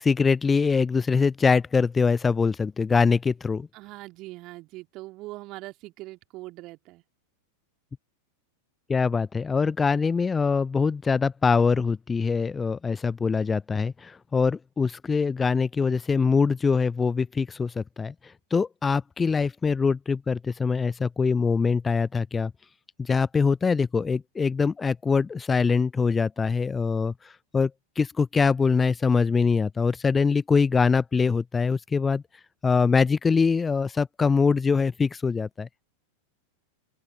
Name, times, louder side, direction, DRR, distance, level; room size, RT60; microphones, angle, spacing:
voice 1, 0.0-3.7 8.9-22.5 23.0-27.7 28.0-32.2 32.6-35.7, left 5 dB, 15° left, 0.6 m, -23 dB
voice 2, 3.7-7.0, right 20 dB, 40° right, 2.9 m, -41 dB
open air
figure-of-eight pair, 90°, 0 cm